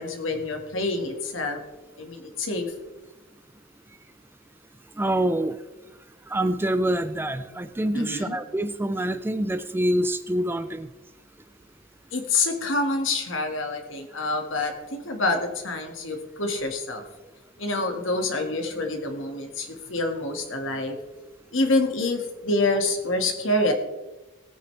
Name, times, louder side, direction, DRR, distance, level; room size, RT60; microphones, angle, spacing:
voice 1, 0.0-1.6 2.0-2.7 7.9-8.4 12.1-17.0 17.6-21.0 21.5-23.7, left 2 dB, 70° left, 4 dB, 1.9 m, -27 dB
voice 2, 5.0-5.6 6.3-10.9, right 1 dB, 10° right, 12 dB, 0.4 m, -26 dB
18.0 x 9.1 x 3.3 m, 1.1 s
head